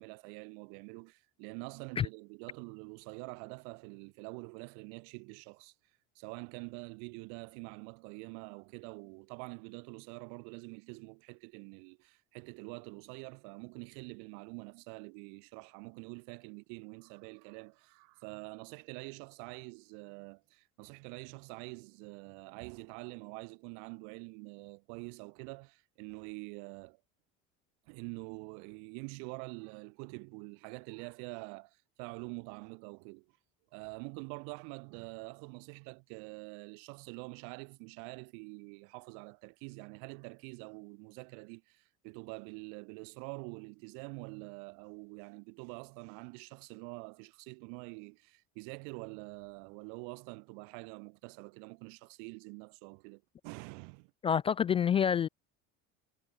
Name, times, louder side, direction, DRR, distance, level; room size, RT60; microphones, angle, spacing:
voice 1, 0.0-5.7 6.1-27.0 27.9-33.3 33.7-54.1, right 40 dB or more, 70° right, 3.2 m, -46 dB
voice 2, 54.2-55.3, left 8 dB, 20° left, 0.3 m, -27 dB
cardioid pair, 150°, 32 cm